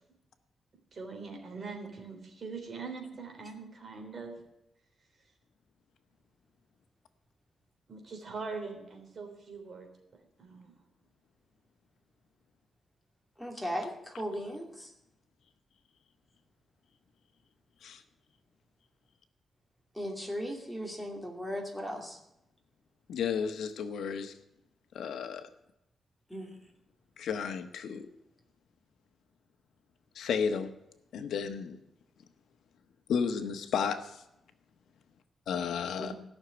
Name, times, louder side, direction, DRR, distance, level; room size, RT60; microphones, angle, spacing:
voice 1, 0.9-4.4 7.9-9.9 10.4-10.7, right 4 dB, 45° right, 3 dB, 3.5 m, -42 dB
voice 2, 13.4-14.9 19.9-22.2 26.3-26.6 36.0-36.1, equal, ahead, 0 dB, 2.7 m, -37 dB
voice 3, 23.1-24.3 24.9-25.5 27.2-28.1 30.1-30.7 31.1-31.8 33.1-34.2 35.5-36.1, left 6 dB, 90° left, 8 dB, 1.2 m, -32 dB
16.0 x 6.6 x 9.7 m, 0.84 s
wide cardioid pair, 135°, 0 cm